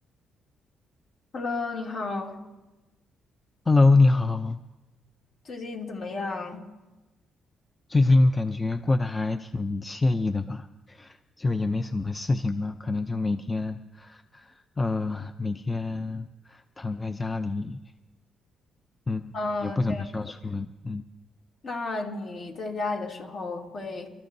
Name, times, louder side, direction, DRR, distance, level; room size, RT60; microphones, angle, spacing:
voice 1, 1.3-2.4 5.4-6.6 19.3-20.0 21.6-24.1, left 3 dB, 55° left, -1 dB, 2.7 m, -32 dB
voice 2, 3.7-4.6 7.9-17.8 19.1-19.4 19.6-21.0, left 3 dB, 20° left, 9 dB, 0.5 m, -25 dB
29.0 x 13.5 x 2.7 m, 1.1 s
cardioid pair, 90°, 0 cm